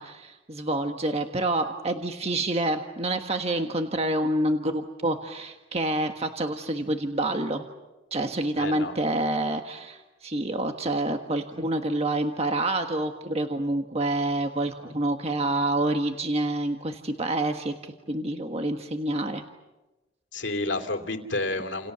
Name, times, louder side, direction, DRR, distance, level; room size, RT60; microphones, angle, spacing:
voice 1, 0.0-7.7 8.1-19.4, right 1 dB, 35° right, 5 dB, 1.4 m, -27 dB
voice 2, 8.6-8.9 20.3-21.9, left 2 dB, 70° left, 6 dB, 3.1 m, -30 dB
29.5 x 28.5 x 6.9 m, 1.1 s
head